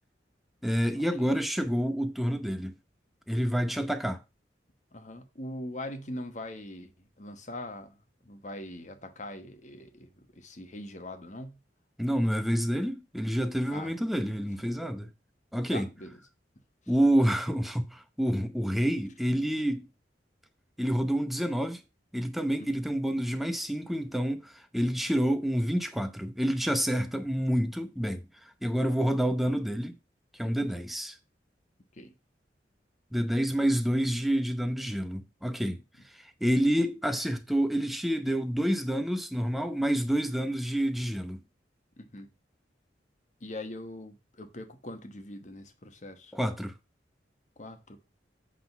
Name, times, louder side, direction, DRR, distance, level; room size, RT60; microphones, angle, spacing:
voice 1, 0.6-2.7 3.3-4.2 12.0-15.1 15.5-15.9 16.9-19.9 20.8-21.8 22.1-28.2 28.6-29.9 30.4-31.1 33.1-35.8 36.1-41.4 46.3-46.7, equal, ahead, 0.8 m, -28 dB
voice 2, 4.9-6.9 7.2-8.0 8.2-11.6 13.7-13.9 15.7-16.2 22.6-22.7 30.4-30.7 32.0-32.1 42.0-42.3 43.4-46.3 47.6-48.0, left 1 dB, 40° left, 1.2 m, -42 dB
8.1 x 3.8 x 5.8 m
head